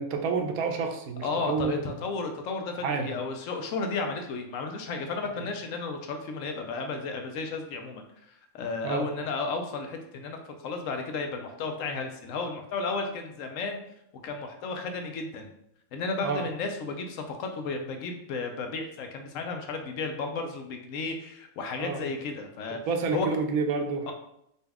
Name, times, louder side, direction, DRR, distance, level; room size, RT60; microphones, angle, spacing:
voice 1, 0.0-1.9 2.8-3.1 5.3-5.4 8.8-9.1 16.2-16.5 20.4-20.5 21.8-22.1 22.9-24.1, right 4 dB, 80° right, 5 dB, 1.0 m, -29 dB
voice 2, 1.2-13.8 14.2-15.5 15.9-22.8 23.1-23.3 24.1-24.2, left 4 dB, 70° left, 4 dB, 0.9 m, -33 dB
4.1 x 2.3 x 3.4 m, 0.76 s
omnidirectional pair, 1.5 m